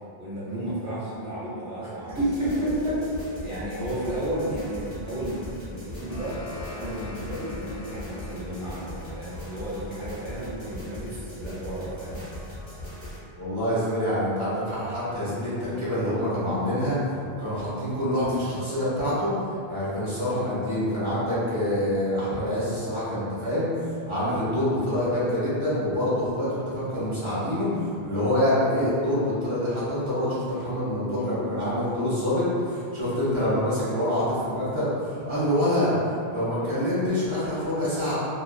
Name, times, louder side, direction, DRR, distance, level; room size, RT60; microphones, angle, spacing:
voice 1, 0.2-2.6 3.4-6.4 6.7-12.2, right 1 dB, 55° right, -9 dB, 1.0 m, -34 dB
sound 1, 2.1-13.2, left 1 dB, 15° left, 0.9 m, -39 dB
sound 2, 5.7-10.7, left 3 dB, 45° left, 0.6 m, -45 dB
voice 2, 13.4-17.0 17.4-19.3 19.7-23.7 24.1-35.9 36.3-38.1, left 1 dB, 35° right, -11 dB, 0.8 m, -26 dB
2.6 x 2.2 x 2.2 m, 2.5 s
omnidirectional pair, 1.0 m